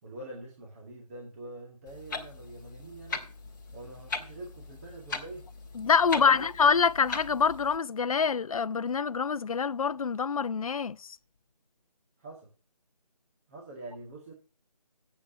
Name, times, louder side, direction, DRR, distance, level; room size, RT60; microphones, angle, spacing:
voice 1, 0.0-3.3 3.7-5.5 6.1-6.5 12.2-12.5 13.5-14.3, right 2 dB, 20° right, 1.9 m, -45 dB
Clock, 1.9-7.8, left 3 dB, 30° left, 1.9 m, -40 dB
voice 2, 5.8-11.2, left 6 dB, 60° left, 0.5 m, -26 dB
10.0 x 8.2 x 5.9 m
figure-of-eight pair, 165°, 21 cm